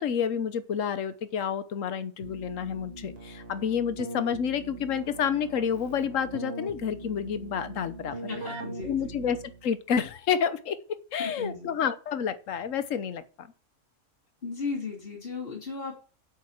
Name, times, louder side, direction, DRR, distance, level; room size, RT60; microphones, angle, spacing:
voice 1, 0.0-8.2 8.8-10.8 11.1-13.5, left 7 dB, 90° left, 1.3 m, -29 dB
Keyboard (musical), 2.2-9.8, right 1 dB, 50° right, 1.6 m, -41 dB
voice 2, 8.3-9.1 11.2-11.7 14.4-15.9, left 4 dB, 50° left, 3.2 m, -36 dB
8.0 x 7.2 x 7.2 m
omnidirectional pair, 1.3 m